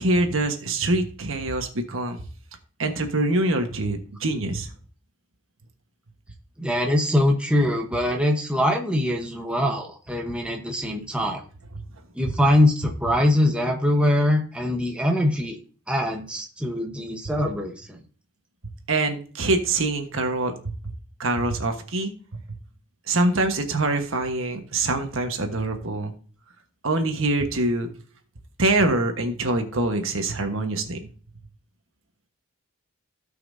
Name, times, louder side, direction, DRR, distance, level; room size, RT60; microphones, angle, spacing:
voice 1, 0.0-2.2 2.8-4.7 18.9-20.9 21.2-22.4 23.1-26.1 26.8-27.9 28.6-31.1, right 2 dB, 65° right, 5 dB, 1.4 m, -24 dB
voice 2, 6.6-11.4 12.1-15.6 15.9-18.0, left 1 dB, 5° right, 1 dB, 1.0 m, -23 dB
16.5 x 5.7 x 2.7 m, 0.41 s
head